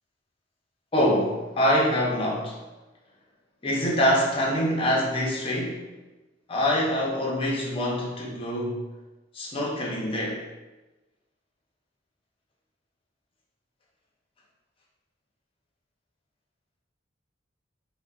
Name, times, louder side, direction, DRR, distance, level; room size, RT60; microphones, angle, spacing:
voice 1, 0.9-2.6 3.6-5.8 6.5-8.9 9.4-10.5, equal, 30° left, -3 dB, 0.5 m, -25 dB
3.6 x 2.1 x 2.3 m, 1.1 s
head